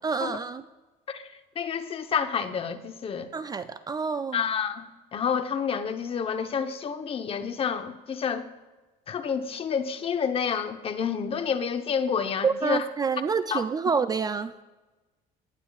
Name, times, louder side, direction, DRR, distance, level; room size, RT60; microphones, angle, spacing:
voice 1, 0.0-0.6 3.3-4.4 12.4-14.5, right 5 dB, 25° right, 12 dB, 0.3 m, -27 dB
voice 2, 1.6-3.3 4.3-4.9 5.1-8.5 9.1-12.8 13.5-13.6, left 6 dB, 35° left, 8 dB, 0.9 m, -29 dB
18.5 x 9.9 x 2.4 m, 1.2 s
cardioid pair, 120°, 17 cm